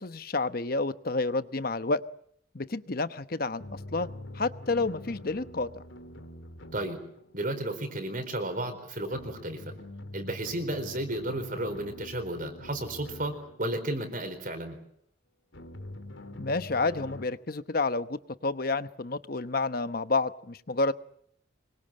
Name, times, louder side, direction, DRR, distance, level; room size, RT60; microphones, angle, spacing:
voice 1, 0.0-2.0 2.5-4.1 4.3-5.8 16.4-20.9, left 3 dB, 50° left, 12 dB, 1.0 m, -30 dB
sound 1, 3.6-8.0 9.1-14.0 15.5-17.3, left 1 dB, 85° left, 3.0 m, -45 dB
voice 2, 7.3-9.6 10.1-14.8, right 1 dB, 45° right, 7 dB, 4.4 m, -33 dB
25.0 x 23.5 x 7.5 m, 0.70 s
head